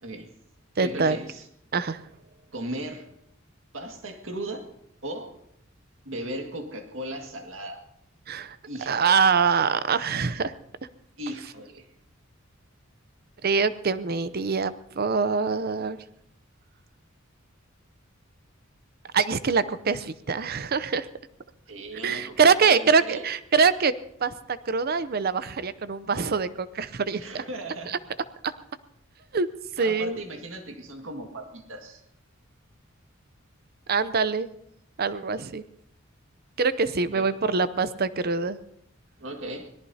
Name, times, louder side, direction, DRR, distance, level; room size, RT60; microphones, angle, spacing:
voice 1, 0.0-0.3 0.8-1.5 2.5-3.1 3.7-4.7 5.0-5.3 6.0-7.8 8.7-9.2 11.2-11.9 21.7-23.3 27.1-27.9 29.8-32.0 37.0-37.3 39.2-39.7, right 1 dB, 70° right, 4 dB, 2.0 m, -37 dB
voice 2, 0.8-1.2 1.7-2.0 8.3-8.6 8.9-10.5 13.4-16.0 19.1-21.1 22.0-23.9 24.2-27.4 27.9-28.0 28.4-28.5 29.3-29.5 29.8-30.2 33.9-34.5 35.0-35.6 36.6-38.6, right 5 dB, 50° right, 14 dB, 0.6 m, -24 dB
25.0 x 18.5 x 2.8 m, 0.76 s
head